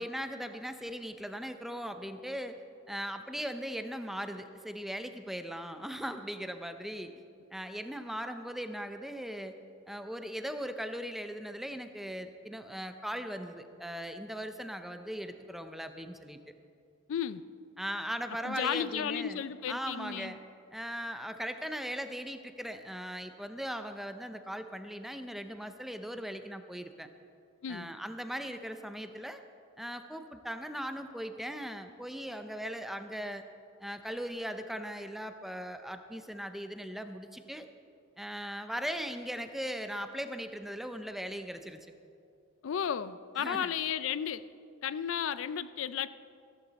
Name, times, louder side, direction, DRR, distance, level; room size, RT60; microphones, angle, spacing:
voice 1, 0.0-2.6 2.9-7.1 7.5-9.6 9.9-16.4 17.8-20.4 20.7-27.1 27.7-29.4 29.8-33.4 33.8-37.7 38.2-41.8 43.4-43.7, equal, ahead, 8 dB, 0.6 m, -39 dB
voice 2, 17.1-17.5 18.4-20.3 27.6-27.9 42.6-44.5 44.8-46.1, left 8 dB, 70° left, 15 dB, 0.4 m, -33 dB
14.5 x 14.0 x 4.1 m, 2.4 s
head